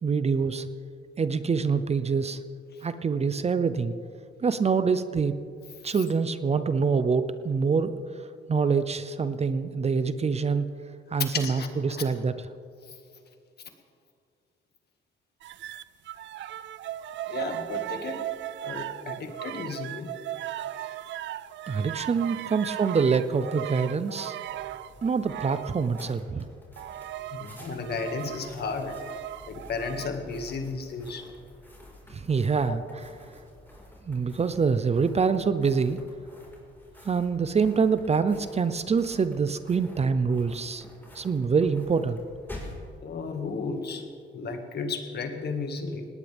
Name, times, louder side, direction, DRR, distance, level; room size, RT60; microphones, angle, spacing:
voice 1, 0.0-0.7 1.2-2.4 2.8-3.9 4.4-5.3 5.8-7.9 8.5-10.7 11.1-12.3 21.7-24.4 25.0-26.5 32.1-32.8 34.1-36.0 37.1-40.8 41.1-42.2, right 5 dB, 30° right, 12 dB, 0.7 m, -25 dB
voice 2, 11.3-12.1 17.3-18.2 18.6-20.1 22.3-22.5 27.3-29.0 29.5-31.3 32.7-32.8 43.0-44.0 44.3-46.1, left 4 dB, 55° left, 5 dB, 2.0 m, -34 dB
sound 1, 15.4-26.1 26.8-30.1, right 13 dB, 70° right, 0.5 m, -37 dB
sound 2, 24.4-42.9, left 1 dB, 10° left, 4.8 m, -49 dB
19.0 x 18.0 x 3.6 m, 2.4 s
cardioid pair, 90°, 20 cm